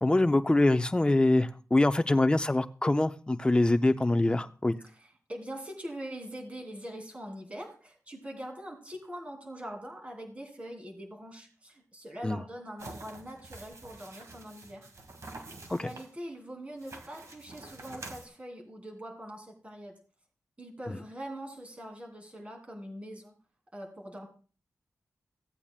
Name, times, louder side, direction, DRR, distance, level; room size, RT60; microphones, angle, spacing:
voice 1, 0.0-4.7 12.2-12.4 15.7-15.9, left 2 dB, 15° left, 0.5 m, -24 dB
voice 2, 5.3-14.9 15.4-19.9 20.6-23.3 23.7-24.3, equal, 20° right, 2.9 m, -43 dB
sound 1, 12.8-16.1 16.8-18.3, right 2 dB, 60° right, 1.6 m, -47 dB
16.0 x 8.6 x 2.4 m
wide cardioid pair, 125°, 6 cm